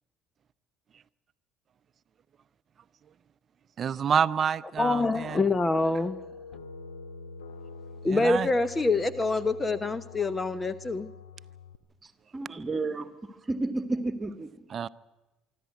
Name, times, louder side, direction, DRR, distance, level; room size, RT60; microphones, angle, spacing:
voice 1, 3.8-5.4 8.1-8.5 14.7-14.9, right 7 dB, 45° right, 0.7 m, -27 dB
sound 1, 4.8-11.8, left 4 dB, 85° left, 1.3 m, -45 dB
voice 2, 4.8-6.2 8.0-11.1, left 3 dB, 25° left, 1.0 m, -26 dB
voice 3, 12.3-14.5, right 2 dB, 25° right, 1.7 m, -31 dB
25.0 x 13.0 x 9.4 m
hypercardioid pair, 60°, 0 cm